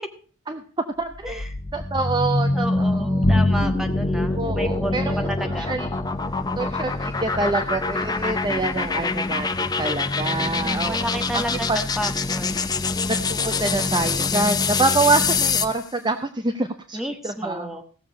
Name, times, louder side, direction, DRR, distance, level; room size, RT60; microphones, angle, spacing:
sound 1, 1.0-15.8, left 3 dB, 20° left, 0.6 m, -25 dB
voice 1, 1.0-1.4 1.7-3.4 4.4-5.9 6.6-11.4 11.7-11.8 13.1-17.0 17.2-17.7, right 3 dB, 25° right, 7 dB, 0.7 m, -26 dB
voice 2, 2.5-5.0 5.3-5.7 10.4-12.6 16.9-17.8, equal, ahead, 5 dB, 1.5 m, -32 dB
Bowed string instrument, 3.2-8.9, left 1 dB, 55° left, 1.3 m, -29 dB
16.5 x 7.2 x 5.2 m, 0.41 s
head